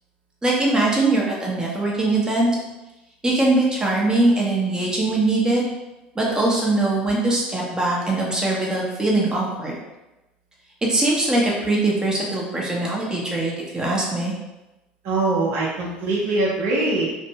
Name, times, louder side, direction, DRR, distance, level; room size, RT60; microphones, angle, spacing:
voice 1, 0.4-2.5 3.2-5.7 6.2-9.7 10.8-14.3, right 2 dB, 15° right, -4 dB, 0.8 m, -21 dB
voice 2, 15.0-17.1, right 2 dB, 60° right, -4 dB, 0.7 m, -22 dB
2.5 x 2.1 x 2.8 m, 1.0 s
hypercardioid pair, 75°, 5 cm